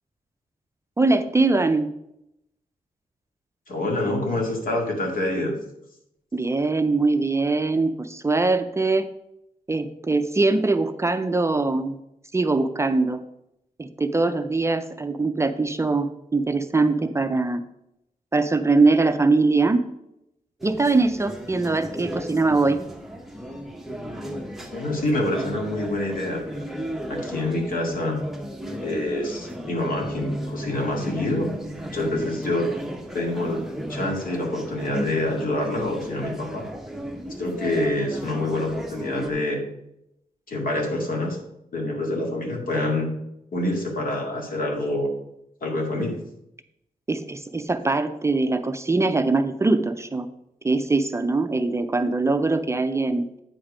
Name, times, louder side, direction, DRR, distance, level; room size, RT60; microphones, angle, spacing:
voice 1, 1.0-1.9 6.3-9.1 9.7-12.0 12.3-13.2 13.8-17.6 18.3-19.8 20.6-22.8 47.1-50.3 50.6-53.3, right 3 dB, 20° right, 9 dB, 0.4 m, -22 dB
voice 2, 3.7-5.5 24.7-26.7 27.1-28.2 28.8-31.5 31.9-32.7 33.1-33.6 33.9-36.6 37.4-39.6 40.5-41.4 41.7-43.1 43.5-45.1 45.6-46.2, left 1 dB, 75° left, 0 dB, 2.1 m, -26 dB
sound 1, 20.6-39.3, equal, ahead, 0.8 m, -35 dB
8.8 x 5.4 x 4.9 m, 0.82 s
wide cardioid pair, 155°, 14 cm